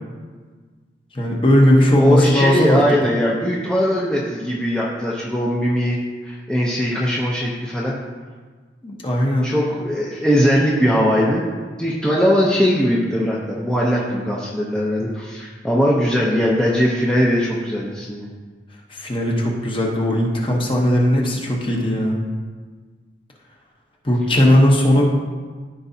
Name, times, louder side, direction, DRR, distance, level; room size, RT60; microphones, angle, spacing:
voice 1, 1.1-2.8 8.8-9.5 18.9-22.2 24.0-25.0, left 1 dB, 30° left, -1 dB, 1.0 m, -17 dB
voice 2, 2.0-6.0 6.2-7.9 9.4-11.4 11.8-18.3, equal, 5° left, -5 dB, 0.7 m, -20 dB
14.0 x 4.6 x 2.8 m, 1.5 s
head